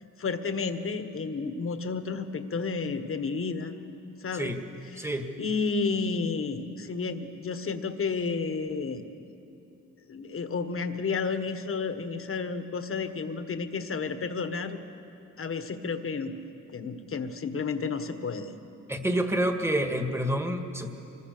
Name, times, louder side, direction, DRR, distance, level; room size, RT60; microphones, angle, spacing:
voice 1, 0.2-3.7 4.2-4.5 4.9-5.1 5.4-9.1 10.1-14.8 15.4-16.3 16.7-18.5, left 4 dB, 40° left, 9 dB, 1.5 m, -31 dB
voice 2, 5.0-5.3 18.9-20.9, right 1 dB, 10° right, 5 dB, 1.8 m, -28 dB
25.0 x 21.5 x 6.8 m, 2.8 s
cardioid pair, 100°, 32 cm